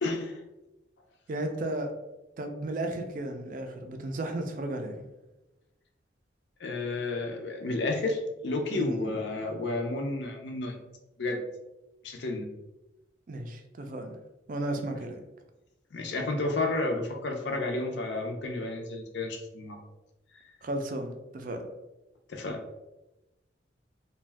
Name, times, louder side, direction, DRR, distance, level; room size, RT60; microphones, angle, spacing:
voice 1, 0.0-0.4 6.6-10.8 11.2-11.4 12.0-12.5 15.9-19.8 22.3-22.6, left 2 dB, 70° left, 3 dB, 0.5 m, -31 dB
voice 2, 1.3-1.9 2.4-5.1 8.7-9.2 13.3-14.2 14.5-15.2 20.6-21.7, right 1 dB, 45° right, 5 dB, 0.4 m, -34 dB
2.5 x 2.2 x 3.3 m, 1.0 s
head